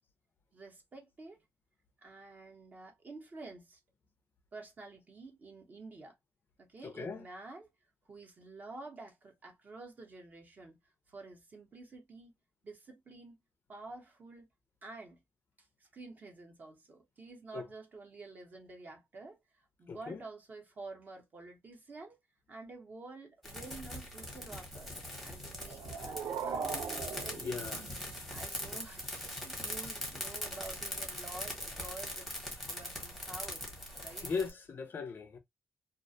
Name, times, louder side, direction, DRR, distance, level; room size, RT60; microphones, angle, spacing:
voice 1, 0.5-1.4 2.0-3.8 4.5-6.1 6.6-7.7 8.1-10.7 11.1-12.3 12.6-13.4 13.7-14.5 14.8-15.2 15.9-19.4 19.8-22.2 22.5-24.9 25.2-26.7 27.2-27.9 28.3-32.3 32.7-33.6 34.0-34.3, right 3 dB, 35° right, 0.7 m, -49 dB
voice 2, 6.8-7.2 17.5-17.6 19.9-20.2 27.4-27.8 34.2-35.4, left 5 dB, 40° left, 0.4 m, -38 dB
sound 1, 23.4-34.5, left 1 dB, ahead, 0.8 m, -41 dB
sound 2, 25.5-28.5, right 6 dB, 75° right, 0.4 m, -40 dB
2.4 x 2.1 x 2.5 m
wide cardioid pair, 175°, 5 cm